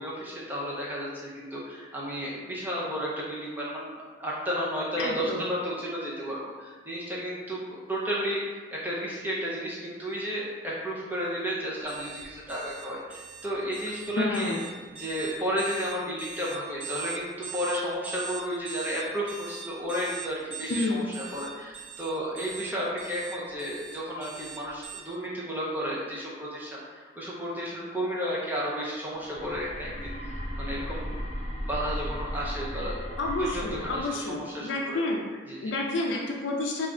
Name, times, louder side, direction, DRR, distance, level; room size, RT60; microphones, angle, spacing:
voice 1, 0.0-14.5 15.0-30.1 30.6-31.2 31.7-33.0 33.4-35.0 35.5-35.7, equal, 10° right, -6 dB, 0.5 m, -33 dB
voice 2, 5.0-5.4 14.2-14.6 20.7-21.1 33.2-35.2 35.6-36.9, left 2 dB, 80° left, 0 dB, 0.4 m, -29 dB
sound 1, 11.9-25.0, right 9 dB, 85° right, 1.0 m, -41 dB
sound 2, 29.1-34.0, equal, 35° left, 0.7 m, -35 dB
3.3 x 2.4 x 3.6 m, 1.5 s
head